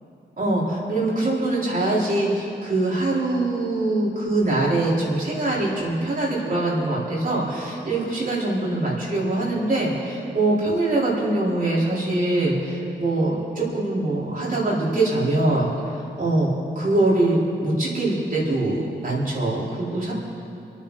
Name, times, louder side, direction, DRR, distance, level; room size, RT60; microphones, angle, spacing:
voice 1, 0.4-20.1, right 2 dB, 45° right, -6 dB, 4.6 m, -23 dB
29.5 x 9.9 x 4.2 m, 2.8 s
wide cardioid pair, 95°, 19 cm